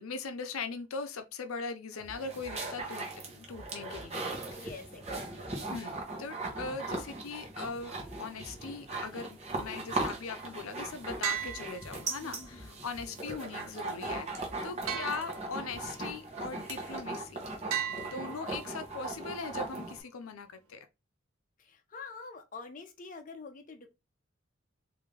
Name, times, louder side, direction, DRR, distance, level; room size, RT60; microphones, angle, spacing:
voice 1, 0.0-4.2 4.5-4.7 5.7-17.4 18.0-20.9, left 4 dB, 80° left, 0.5 m, -40 dB
sound 1, 2.0-2.6 3.5-4.1 5.0-5.6 6.5-7.1 8.0-8.6 9.5-10.1 11.0-11.6 12.5-13.1 14.0-14.6 15.5-15.6, equal, 10° left, 1.0 m, -51 dB
sound 2, 2.0-20.0, right 2 dB, 30° right, 0.9 m, -39 dB
voice 2, 4.5-6.0 11.4-11.7 12.2-13.4 14.7-15.7 18.1-18.4 21.6-23.9, left 4 dB, 40° left, 0.6 m, -48 dB
sound 3, 11.2-12.5 14.9-15.9 17.7-18.9, right 8 dB, 85° right, 0.7 m, -37 dB
3.7 x 2.6 x 3.2 m
head